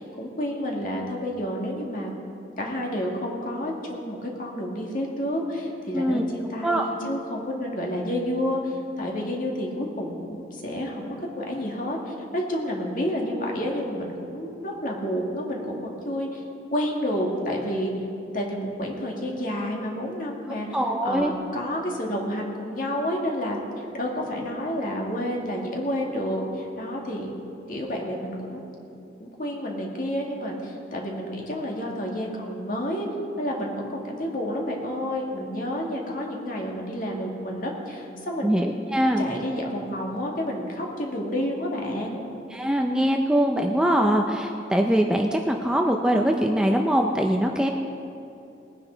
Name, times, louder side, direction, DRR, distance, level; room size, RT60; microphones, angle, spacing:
voice 1, 0.0-2.1 2.6-16.4 16.7-17.9 18.3-20.7 21.0-27.4 27.7-28.6 29.2-33.1 33.4-38.5 39.2-42.3, equal, 45° left, -1 dB, 2.1 m, -30 dB
voice 2, 20.7-21.3 38.4-39.2 42.5-47.7, equal, 5° right, 2 dB, 0.5 m, -22 dB
20.0 x 9.7 x 4.0 m, 2.8 s
head